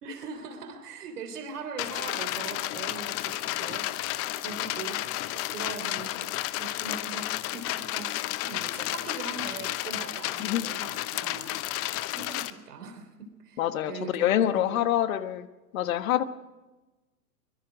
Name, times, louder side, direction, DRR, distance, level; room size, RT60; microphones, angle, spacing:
voice 1, 0.0-3.9 4.3-5.0 5.3-11.6 12.1-13.6 13.9-14.8, right 5 dB, 70° right, 6 dB, 3.5 m, -41 dB
sound 1, 1.8-12.5, left 16 dB, 30° left, 0.9 m, -32 dB
voice 2, 13.6-15.5 15.7-16.2, left 12 dB, 55° left, 11 dB, 1.5 m, -26 dB
24.0 x 22.0 x 5.1 m, 1.1 s
figure-of-eight pair, 105°, 47 cm